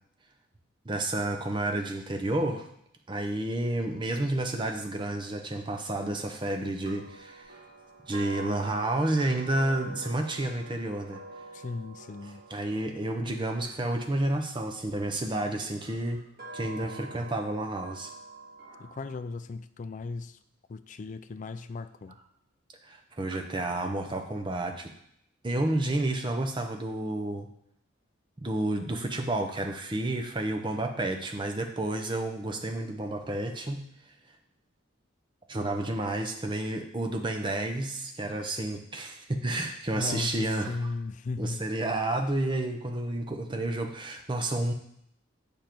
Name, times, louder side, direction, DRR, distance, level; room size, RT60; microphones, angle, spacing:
voice 1, 0.8-2.7 3.1-7.6 8.0-11.2 12.5-16.2 16.5-18.1 22.8-24.9 25.4-27.5 28.4-33.8 35.5-40.7 41.4-44.7, right 1 dB, 25° right, 4 dB, 0.7 m, -30 dB
sound 1, 6.8-15.0 15.7-19.2, right 3 dB, 45° right, 1.5 m, -46 dB
voice 2, 11.5-12.4 18.8-20.4 20.7-22.2 39.9-41.7, left 3 dB, 35° left, 12 dB, 0.3 m, -36 dB
7.2 x 5.2 x 4.5 m, 0.73 s
head